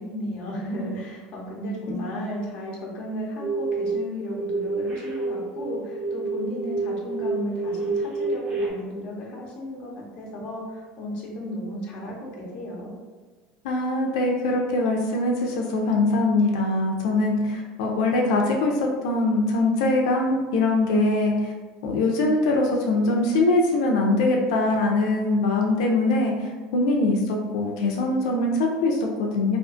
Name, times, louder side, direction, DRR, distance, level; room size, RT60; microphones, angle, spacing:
voice 1, 0.0-12.9, equal, 40° left, -3 dB, 0.6 m, -34 dB
sound 1, 3.4-4.0 4.3-8.7, right 3 dB, 30° right, 0.5 m, -28 dB
voice 2, 13.6-21.5 21.8-29.6, left 2 dB, 90° left, 0 dB, 0.3 m, -22 dB
2.5 x 2.3 x 2.4 m, 1.3 s
cardioid pair, 165°, 3 cm